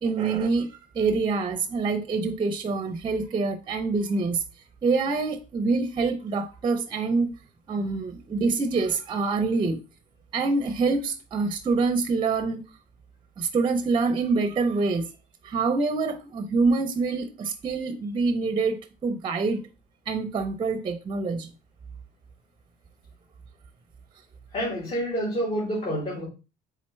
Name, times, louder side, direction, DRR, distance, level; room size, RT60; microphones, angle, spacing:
voice 1, 0.0-4.4 4.8-7.3 7.7-9.8 10.3-12.6 13.4-15.1 15.4-19.6 20.1-21.5, right 4 dB, 30° right, 0.5 m, -26 dB
voice 2, 24.5-26.2, equal, 35° left, 1.6 m, -28 dB
4.2 x 3.8 x 3.1 m
cardioid pair, 110°, 17 cm